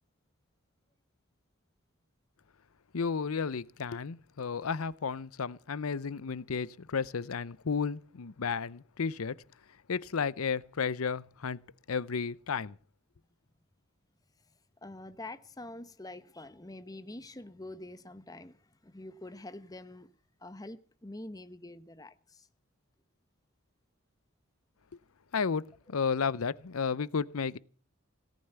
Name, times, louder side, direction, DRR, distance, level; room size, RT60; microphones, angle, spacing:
voice 1, 2.9-9.4 9.9-11.6 11.9-12.8 25.3-27.6, left 5 dB, 85° left, 0.7 m, -33 dB
voice 2, 14.8-20.1 20.4-22.5, left 2 dB, 15° left, 1.0 m, -46 dB
17.5 x 9.2 x 8.1 m
head